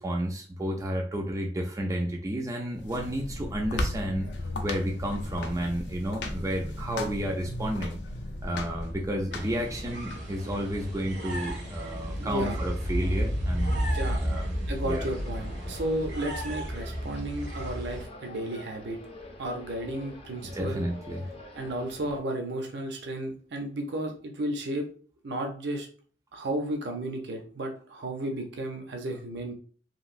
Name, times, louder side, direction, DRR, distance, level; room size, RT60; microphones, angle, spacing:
voice 1, 0.0-4.3 4.6-8.0 8.4-13.9 14.2-14.4 14.9-15.1 20.4-21.4, equal, 20° right, 1 dB, 0.3 m, -31 dB
sound 1, 2.7-10.2, left 1 dB, 80° left, 0.5 m, -36 dB
sound 2, 9.3-18.0, equal, 90° right, 1.4 m, -32 dB
voice 2, 12.2-12.6 13.9-14.2 14.7-19.0 19.4-20.8 21.5-24.9 25.2-25.9 26.3-29.5, right 1 dB, 70° right, 3 dB, 0.5 m, -33 dB
sound 3, 15.0-22.2, left 1 dB, 35° left, 0.6 m, -47 dB
3.0 x 2.6 x 2.5 m, 0.43 s
head